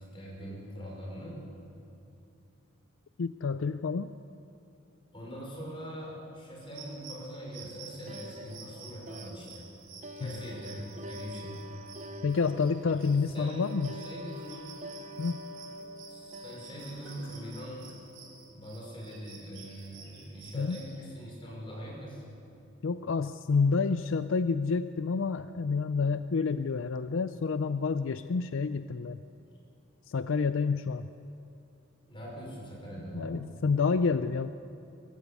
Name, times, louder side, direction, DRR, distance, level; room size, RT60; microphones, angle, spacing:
voice 1, 0.0-1.4 5.1-9.7 10.1-11.6 13.3-14.7 16.1-17.9 18.5-22.2 32.1-33.5, equal, 25° left, -3 dB, 5.5 m, -42 dB
voice 2, 3.2-4.1 10.2-10.4 12.2-13.9 15.2-15.4 20.5-20.8 22.8-29.2 30.1-31.1 33.1-34.5, left 4 dB, 70° left, 12 dB, 0.4 m, -29 dB
sound 1, 6.6-20.9, right 6 dB, 75° right, 4.2 m, -51 dB
sound 2, 7.9-18.4, equal, 35° right, 0.8 m, -46 dB
sound 3, 12.4-13.3 13.8-15.2 15.6-15.9 16.8-18.1, left 1 dB, 55° left, 3.2 m, -57 dB
22.0 x 14.0 x 8.3 m, 2.7 s
head